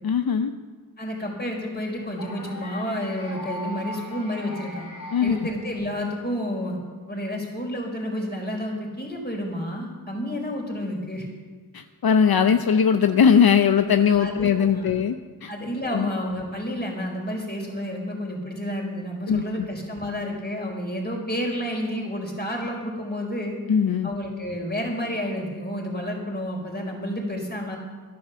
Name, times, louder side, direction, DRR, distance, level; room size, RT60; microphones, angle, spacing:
voice 1, 0.0-0.5 5.1-5.4 11.7-15.5 15.9-16.1 19.3-19.7 23.7-24.1, left 7 dB, 70° left, 8 dB, 0.7 m, -20 dB
voice 2, 1.0-4.9 5.2-6.8 7.1-11.3 14.1-14.9 15.5-23.5 24.0-27.8, equal, 25° left, 0 dB, 4.6 m, -30 dB
sound 1, 2.2-6.3, equal, 55° left, 3.0 m, -39 dB
12.0 x 11.5 x 6.9 m, 1.5 s
cardioid pair, 50°, 38 cm